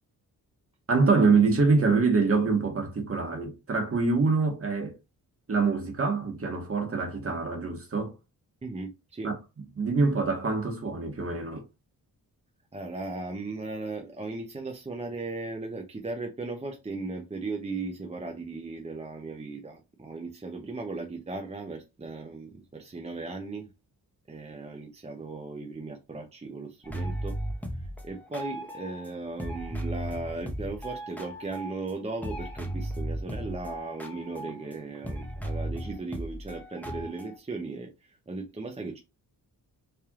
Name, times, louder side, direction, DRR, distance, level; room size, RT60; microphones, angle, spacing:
voice 1, 0.9-5.0 5.5-8.1 9.2-9.3 9.8-11.6, right 4 dB, 35° right, 1.4 m, -25 dB
voice 2, 8.6-9.3 12.7-23.7 24.3-27.4 27.7-39.0, right 3 dB, 15° right, 0.7 m, -37 dB
sound 1, 26.8-29.1 29.4-31.9 32.2-37.4, right 1 dB, 5° left, 1.0 m, -36 dB
4.3 x 3.4 x 2.4 m
cardioid pair, 85°, 37 cm